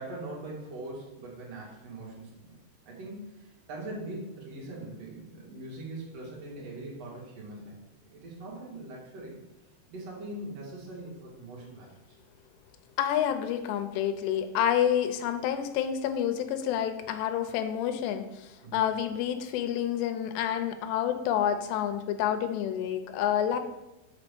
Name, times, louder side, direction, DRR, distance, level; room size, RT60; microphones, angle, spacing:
voice 1, 0.0-2.5 2.9-7.7 8.1-9.4 9.9-12.2 18.6-18.9, right 2 dB, 45° right, -4 dB, 2.9 m, -41 dB
voice 2, 13.0-23.6, left 10 dB, 90° left, 8 dB, 2.9 m, -28 dB
6.1 x 5.6 x 6.8 m, 1.0 s
omnidirectional pair, 4.8 m